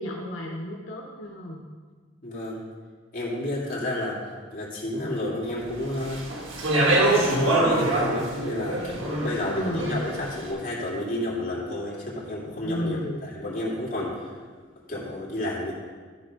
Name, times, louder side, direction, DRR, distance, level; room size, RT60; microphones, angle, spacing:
voice 1, 0.0-1.6 9.5-9.9 12.6-13.2, left 1 dB, 80° left, -1 dB, 1.0 m, -32 dB
voice 2, 2.2-2.6 3.1-4.2 4.5-6.3 7.1-14.4 14.9-15.7, left 1 dB, 45° left, -5 dB, 2.6 m, -31 dB
Speech, 5.9-10.3, right 2 dB, 80° right, 1.6 m, -24 dB
13.5 x 4.5 x 5.0 m, 1.5 s
head